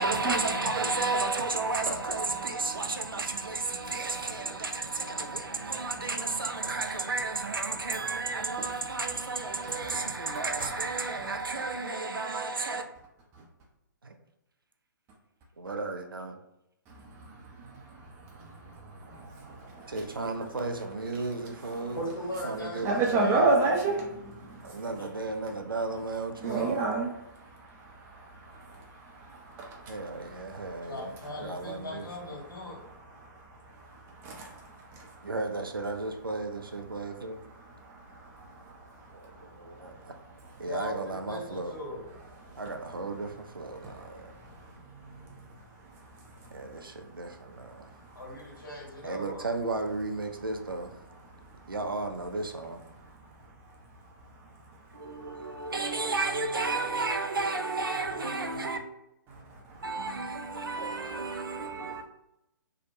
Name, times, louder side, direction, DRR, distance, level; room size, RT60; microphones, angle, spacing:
voice 1, 0.0-12.8 14.0-14.1 15.6-16.4 19.9-22.0 22.4-23.5 24.6-26.9 29.9-32.4 35.2-37.4 39.1-39.3 39.6-40.1 40.6-41.7 42.6-44.3 46.5-47.9 49.0-50.9 51.7-52.8 54.9-58.8 59.8-62.0, right 3 dB, 80° right, 0.4 m, -33 dB
voice 2, 3.8-4.2 4.5-4.7 5.2-5.8 10.2-10.3 16.9-19.9 21.8-22.0 22.8-24.8 26.4-30.9 33.2-35.2 37.6-40.5 42.4-42.6 43.8-46.8 47.8-48.2 51.6-51.7 55.0-55.7 59.3-59.8, right 3 dB, 20° right, 0.5 m, -34 dB
voice 3, 22.0-23.5 24.9-25.1 26.4-27.0 30.9-32.8 40.6-42.1 48.1-49.5, equal, 70° left, 1.4 m, -39 dB
2.7 x 2.1 x 2.6 m
figure-of-eight pair, 120°, 11 cm